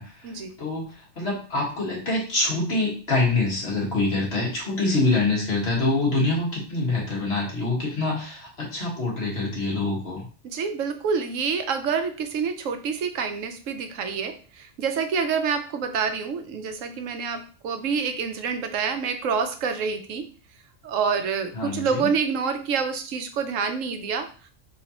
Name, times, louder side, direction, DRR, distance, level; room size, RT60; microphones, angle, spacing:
voice 1, 0.0-10.2 21.5-22.1, left 2 dB, 55° left, -4 dB, 1.8 m, -25 dB
voice 2, 10.4-20.3 20.8-24.3, right 6 dB, 80° right, 7 dB, 1.0 m, -27 dB
4.1 x 3.8 x 2.8 m, 0.38 s
omnidirectional pair, 1.3 m